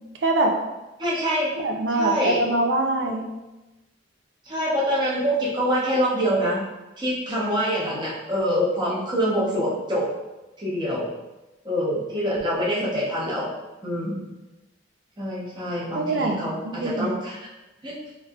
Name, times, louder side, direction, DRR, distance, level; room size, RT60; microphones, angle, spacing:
voice 1, 0.2-0.5 1.5-3.3 15.9-17.1, right 2 dB, 65° right, 2 dB, 0.5 m, -24 dB
voice 2, 1.0-1.5 1.9-2.5 4.4-6.6 7.0-10.1 10.6-11.1 11.6-13.5 13.8-14.3 15.2-17.4 17.8-18.0, equal, 25° right, -7 dB, 0.9 m, -25 dB
3.2 x 3.2 x 2.3 m, 1.0 s
head